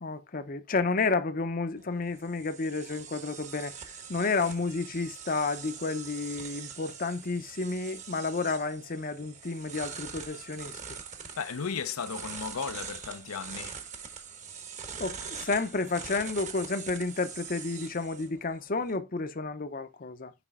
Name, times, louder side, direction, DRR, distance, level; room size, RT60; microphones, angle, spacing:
voice 1, 0.0-3.7 4.1-11.0 15.0-20.3, left 3 dB, 40° left, 0.7 m, -31 dB
sound 1, 1.8-19.0, right 6 dB, 35° right, 1.1 m, -43 dB
voice 2, 11.3-13.9, left 6 dB, 85° left, 0.6 m, -35 dB
6.1 x 4.9 x 3.6 m
head